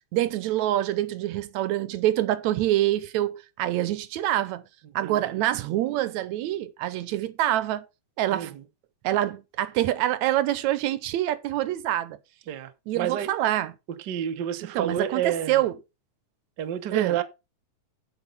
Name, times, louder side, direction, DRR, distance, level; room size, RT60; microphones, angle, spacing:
voice 1, 0.1-4.6 5.0-7.9 8.2-8.5 9.0-12.2 12.9-13.7 14.6-15.8 16.9-17.2, right 13 dB, 80° right, 2.0 m, -26 dB
voice 2, 8.3-8.6 12.5-13.3 14.1-15.6 16.6-17.2, right 10 dB, 60° right, 1.1 m, -29 dB
8.1 x 8.0 x 5.4 m
omnidirectional pair, 3.3 m